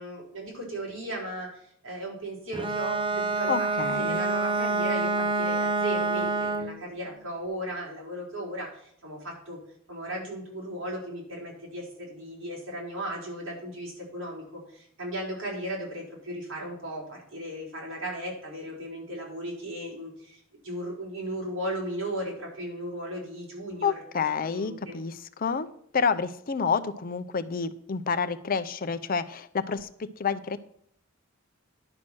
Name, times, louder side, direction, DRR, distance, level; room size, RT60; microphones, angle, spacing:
voice 1, 0.0-3.7 4.0-9.6 9.9-23.9 24.4-25.0, right 1 dB, 65° right, -3 dB, 4.6 m, -36 dB
Bowed string instrument, 2.5-6.8, right 3 dB, 25° right, 0.7 m, -27 dB
voice 2, 3.5-4.2 23.8-25.7 25.9-30.6, left 5 dB, 45° left, 11 dB, 0.5 m, -29 dB
11.0 x 6.0 x 6.1 m, 0.70 s
head